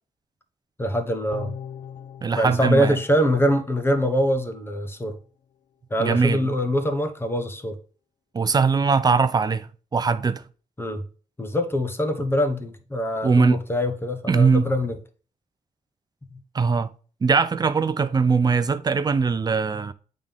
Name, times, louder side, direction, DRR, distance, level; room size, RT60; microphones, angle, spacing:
voice 1, 0.8-1.5 2.3-5.2 5.9-7.8 10.8-11.0 11.4-15.0, equal, 15° left, 1.2 m, -24 dB
sound 1, 1.3-4.6 5.0-5.1, left 8 dB, 60° left, 0.7 m, -41 dB
voice 2, 2.2-3.0 6.0-6.4 8.3-10.4 13.2-13.6 14.3-14.7 16.5-16.9 17.2-19.9, right 5 dB, 30° right, 0.6 m, -21 dB
8.6 x 3.8 x 3.5 m
cardioid pair, 115°, 14 cm